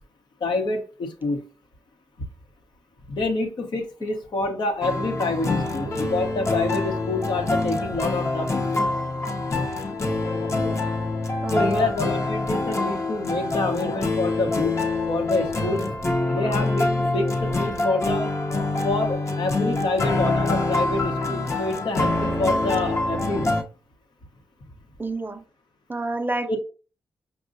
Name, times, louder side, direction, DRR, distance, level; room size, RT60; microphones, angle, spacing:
voice 1, 0.4-1.5 3.1-8.9 11.5-14.7 15.1-15.9 16.3-18.3 18.8-23.6 26.5-26.6, left 2 dB, 60° left, 0.9 m, -27 dB
sound 1, 4.8-23.6, left 2 dB, 35° left, 0.9 m, -25 dB
sound 2, 7.2-7.8 8.2-8.4 8.8-9.0 9.7-9.8 10.1-10.8 11.5-12.1 13.5-14.2 15.2-15.8 16.2-16.9 17.3-17.9 18.5-18.9 19.3-20.0 20.4-21.0, left 5 dB, 90° left, 0.5 m, -41 dB
voice 2, 10.6-10.9 11.4-11.9 25.0-25.4 25.9-26.6, right 2 dB, 25° right, 0.6 m, -30 dB
5.2 x 2.3 x 2.6 m
supercardioid pair, 45°, 9 cm